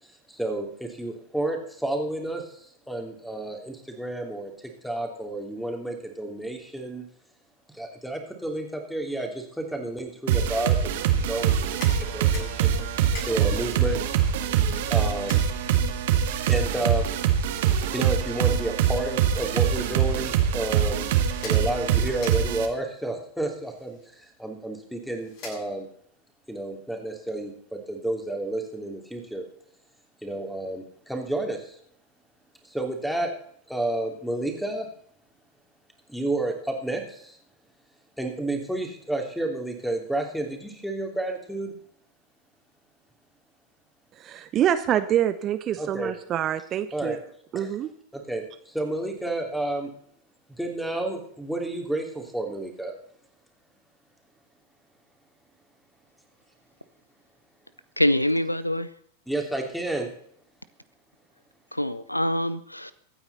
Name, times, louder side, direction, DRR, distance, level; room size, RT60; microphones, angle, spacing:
voice 1, 0.3-4.5 4.8-7.0 7.7-12.8 13.2-14.0 14.9-15.4 16.5-17.1 17.5-21.1 21.4-25.9 26.5-29.4 30.2-31.8 32.6-33.3 33.7-34.9 36.1-37.4 38.2-41.7 45.8-46.2 46.9-47.2 47.5-47.7 48.1-49.9 50.5-52.9 59.3-60.1, right 2 dB, ahead, 4 dB, 3.1 m, -31 dB
sound 1, 10.3-22.7, right 9 dB, 55° right, 1.9 m, -24 dB
sound 2, 11.4-26.1, left 3 dB, 45° left, 7.8 m, -48 dB
voice 2, 44.2-47.2 47.5-47.9, right 10 dB, 30° right, 11 dB, 0.8 m, -26 dB
voice 3, 58.0-58.9 61.7-62.9, left 1 dB, 85° left, 17 dB, 0.7 m, -25 dB
24.0 x 9.1 x 4.2 m, 0.64 s
figure-of-eight pair, 90°, 0 cm